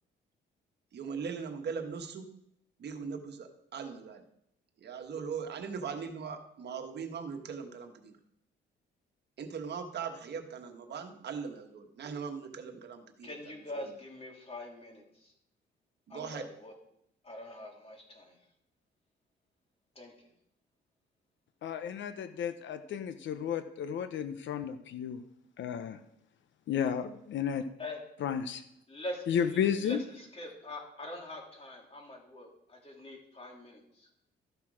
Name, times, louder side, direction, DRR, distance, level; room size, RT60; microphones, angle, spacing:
voice 1, 0.9-2.3 2.8-4.2 4.8-8.2 9.4-13.5 16.1-16.5, right 6 dB, 60° right, 5 dB, 1.3 m, -40 dB
voice 2, 13.2-15.3 16.1-16.7 17.2-18.4 19.9-20.3 27.8-28.0 28.9-34.1, left 1 dB, 30° left, 0 dB, 3.1 m, -44 dB
voice 3, 21.6-25.2 25.6-26.0 26.7-27.6 28.2-28.6 29.3-30.0, left 8 dB, 70° left, 10 dB, 0.8 m, -32 dB
13.0 x 5.9 x 4.9 m, 0.75 s
cardioid pair, 90°, 20 cm